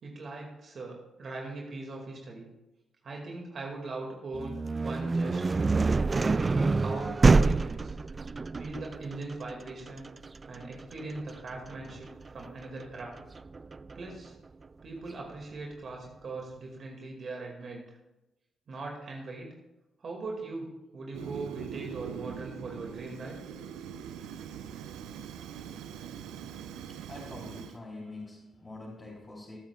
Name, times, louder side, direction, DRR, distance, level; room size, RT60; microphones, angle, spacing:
voice 1, 0.0-2.5 3.0-4.6 4.8-5.6 6.2-8.0 8.6-10.1 10.5-13.1 13.9-14.3 14.8-18.0 18.7-19.5 20.0-20.7 20.9-23.4, right 3 dB, 55° right, 0 dB, 2.2 m, -40 dB
sound 1, 4.3-14.1, right 3 dB, 35° right, 0.4 m, -27 dB
Fire, 21.1-27.8, right 8 dB, 80° right, 0.6 m, -42 dB
voice 2, 26.9-29.6, left 2 dB, 35° left, -7 dB, 4.4 m, -45 dB
20.0 x 8.9 x 2.4 m, 0.97 s
hypercardioid pair, 50°, 0 cm